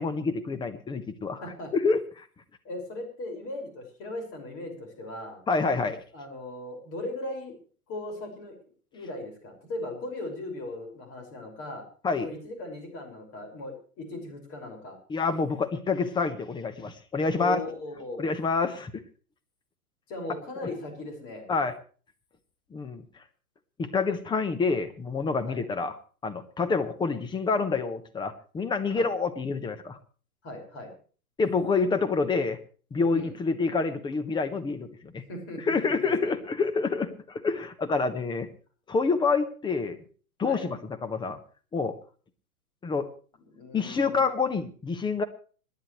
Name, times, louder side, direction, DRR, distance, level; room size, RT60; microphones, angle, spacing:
voice 1, 0.0-1.4 1.7-2.2 5.5-6.0 12.0-12.3 15.1-17.6 18.2-19.0 21.5-21.7 22.7-23.0 23.8-25.9 26.2-30.0 31.4-32.6 32.9-35.2 35.7-38.5 38.9-40.0 40.4-41.4 41.7-42.0 42.8-43.1 43.7-45.2, left 4 dB, 10° left, 10 dB, 1.2 m, -27 dB
voice 2, 1.4-1.7 2.6-5.4 6.1-7.6 7.9-8.5 8.9-11.9 12.2-15.0 17.4-18.3 20.1-21.5 25.5-25.6 28.9-29.1 30.4-30.9 33.1-33.3 35.3-36.3 40.4-40.7 43.5-44.2, left 1 dB, 30° left, 3 dB, 5.6 m, -38 dB
26.5 x 10.5 x 3.2 m, 0.40 s
figure-of-eight pair, 110°, 44 cm